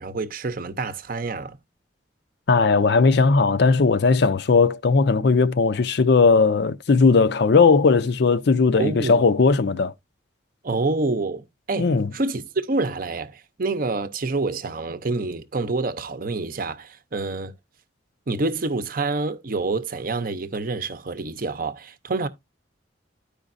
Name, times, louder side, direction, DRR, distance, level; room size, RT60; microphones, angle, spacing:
voice 1, 0.0-1.6 8.7-9.3 10.6-17.5 18.3-22.3, right 3 dB, 50° right, 0.7 m, -27 dB
voice 2, 2.5-9.9 11.8-12.1, left 4 dB, 60° left, 0.5 m, -18 dB
13.0 x 5.1 x 2.5 m
head